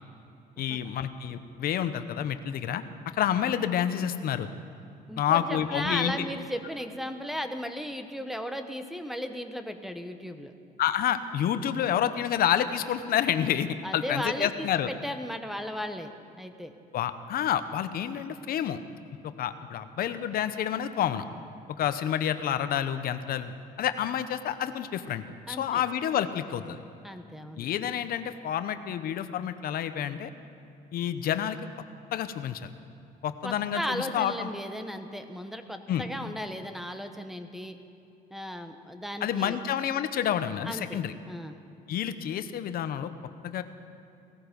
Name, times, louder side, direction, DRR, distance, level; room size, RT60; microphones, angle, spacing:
voice 1, 0.6-4.5 5.2-6.3 10.8-14.9 16.9-18.8 19.2-21.2 21.8-26.8 27.6-30.3 30.9-31.6 32.1-32.7 33.2-34.5 35.9-36.0 39.2-41.1 41.9-43.1 43.4-43.6, left 10 dB, 60° left, 11 dB, 0.8 m, -29 dB
voice 2, 5.1-10.5 13.8-16.1 16.4-16.7 25.5-25.8 27.0-27.7 33.4-37.8 38.3-39.6 40.6-41.0 41.3-41.5, equal, ahead, 7 dB, 1.0 m, -36 dB
18.0 x 14.5 x 5.3 m, 2.6 s
cardioid pair, 110°, 17 cm